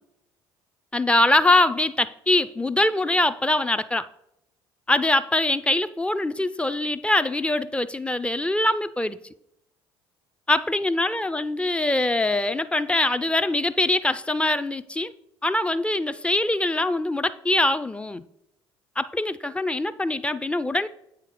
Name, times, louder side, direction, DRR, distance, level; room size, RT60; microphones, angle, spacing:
voice 1, 0.9-4.1 4.9-9.2 10.5-15.1 15.4-18.3 19.0-20.9, left 2 dB, 10° left, 0.4 m, -23 dB
8.4 x 5.1 x 4.1 m
figure-of-eight pair, 55°, 13 cm